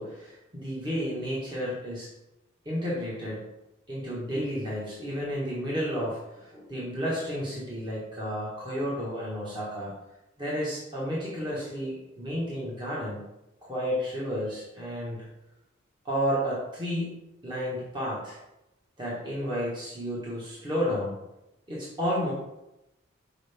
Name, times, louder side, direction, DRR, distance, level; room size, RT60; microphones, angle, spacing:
voice 1, 0.0-2.1 2.6-3.5 3.9-9.9 10.4-13.2 13.6-15.2 16.0-17.1 17.4-18.4 19.0-21.2 21.7-22.3, equal, 20° right, -7 dB, 1.5 m, -31 dB
6.4 x 4.7 x 3.5 m, 0.93 s
head